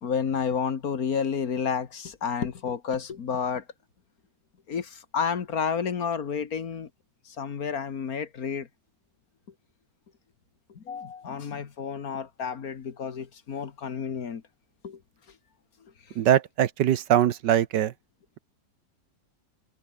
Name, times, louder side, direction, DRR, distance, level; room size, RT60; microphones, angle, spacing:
voice 1, 0.0-3.6 4.7-6.9 7.3-8.7 10.8-14.4 14.8-15.0, left 6 dB, 55° left, 1.9 m, -30 dB
voice 2, 16.2-17.9, right 11 dB, 75° right, 1.5 m, -22 dB
omnidirectional pair, 1.9 m